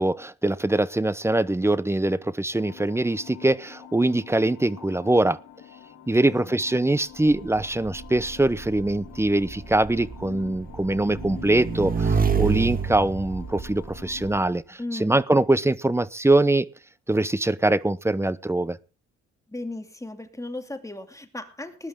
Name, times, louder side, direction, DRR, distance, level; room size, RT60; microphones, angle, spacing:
voice 1, 0.0-5.4 6.1-16.7 17.1-18.8, right 2 dB, 10° right, 0.8 m, -23 dB
sound 1, 2.5-14.5, left 9 dB, 75° left, 4.6 m, -46 dB
voice 2, 6.2-6.6 14.8-15.2 19.5-21.9, left 2 dB, 10° left, 2.6 m, -36 dB
Motorcycle / Engine, 7.3-14.4, right 5 dB, 30° right, 1.8 m, -29 dB
20.0 x 11.0 x 3.7 m
cardioid pair, 90°, 30 cm